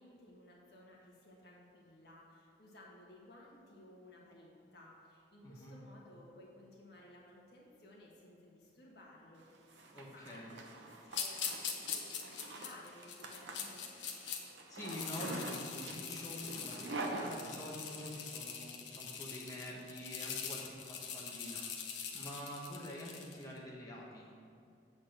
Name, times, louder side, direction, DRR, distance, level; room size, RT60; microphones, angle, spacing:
voice 1, 0.0-13.9, left 1 dB, 60° left, -3 dB, 1.6 m, -58 dB
voice 2, 5.4-5.8 9.9-10.5 14.7-24.3, equal, 20° left, -4 dB, 1.3 m, -47 dB
Zipper (clothing), 9.4-18.1, right 2 dB, 80° right, 0.8 m, -45 dB
sound 1, 11.1-14.4 14.8-23.4, left 7 dB, 80° left, 0.9 m, -43 dB
7.7 x 4.2 x 6.6 m, 2.3 s
head